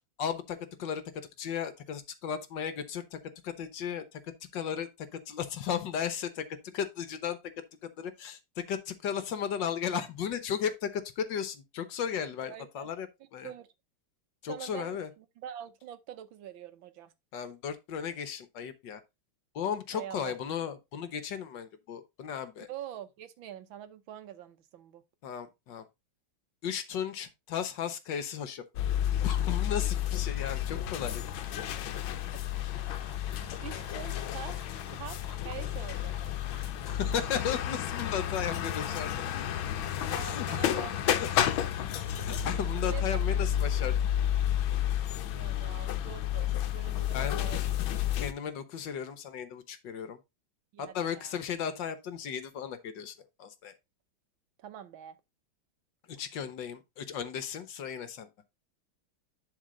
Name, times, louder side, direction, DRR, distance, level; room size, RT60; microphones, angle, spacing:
voice 1, 0.2-1.0 1.4-3.2 3.4-6.4 6.7-7.4 7.8-13.1 13.3-13.5 14.4-15.1 17.3-19.0 19.5-22.7 25.2-25.8 26.6-28.8 29.2-31.2 36.9-39.1 40.2-40.6 41.2-41.6 42.1-44.0 47.1-47.5 48.2-50.2 50.8-53.7 56.1-58.3, left 8 dB, 65° left, 1.6 m, -35 dB
voice 2, 12.4-12.9 13.4-13.7 14.5-17.1 19.9-20.4 22.7-25.0 31.9-32.4 33.6-34.6 34.9-36.4 40.1-41.2 41.5-41.6 42.8-43.0 45.1-47.8 50.7-51.4 54.6-55.2, right 10 dB, 80° right, 1.6 m, -45 dB
sound 1, 28.8-48.3, left 10 dB, 85° left, 1.5 m, -31 dB
sound 2, 29.6-43.2, left 4 dB, 35° left, 0.6 m, -52 dB
11.0 x 4.2 x 3.8 m
omnidirectional pair, 2.2 m